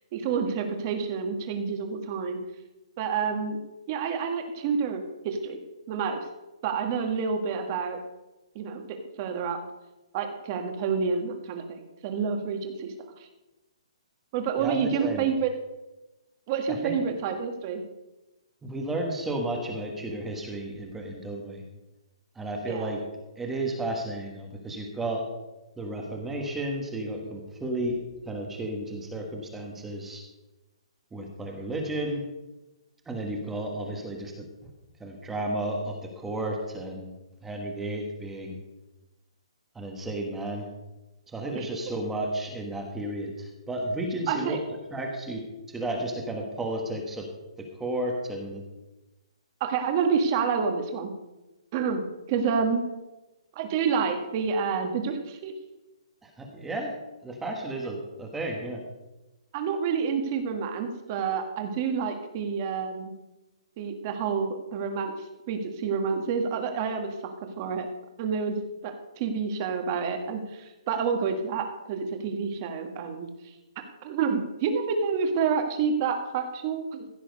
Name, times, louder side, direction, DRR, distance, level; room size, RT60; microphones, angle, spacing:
voice 1, 0.1-2.4 3.0-3.6 3.9-5.6 5.9-6.3 6.6-8.0 8.5-9.6 10.1-12.9 13.2-13.3 14.3-15.5 16.5-17.8 22.7-22.9 41.5-41.7 44.3-44.6 49.6-51.1 51.7-52.8 53.5-55.5 59.5-63.1 63.8-65.1 65.5-67.1 67.6-67.9 68.2-68.6 68.8-73.5 74.0-77.1, right 6 dB, 25° right, 5 dB, 1.5 m, -28 dB
voice 2, 14.6-15.2 16.7-17.0 18.6-21.6 22.3-23.0 23.3-25.3 25.8-28.0 28.3-30.2 31.1-32.2 33.1-34.4 35.0-38.6 39.7-40.7 41.3-44.6 44.9-45.4 45.7-47.3 47.6-48.6 56.2-56.9 57.2-58.8, right 1 dB, 5° right, 1 dB, 1.3 m, -33 dB
15.5 x 7.6 x 5.3 m, 1.0 s
hypercardioid pair, 170°, 3 cm